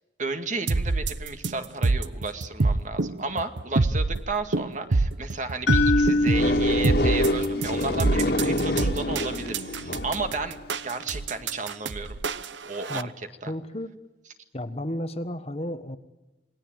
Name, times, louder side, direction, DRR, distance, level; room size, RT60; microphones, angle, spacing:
voice 1, 0.2-12.2 12.7-13.1 13.4-13.5, right 3 dB, 40° right, 7 dB, 2.1 m, -33 dB
sound 1, 0.7-13.0, right 3 dB, 75° right, 0.9 m, -26 dB
sound 2, 5.7-9.7, left 2 dB, 80° left, 1.9 m, -27 dB
sound 3, 6.3-10.4, left 1 dB, 60° left, 2.4 m, -27 dB
voice 2, 13.5-13.9 14.5-16.0, left 1 dB, 35° left, 9 dB, 1.3 m, -32 dB
28.0 x 20.5 x 9.0 m, 1.0 s
head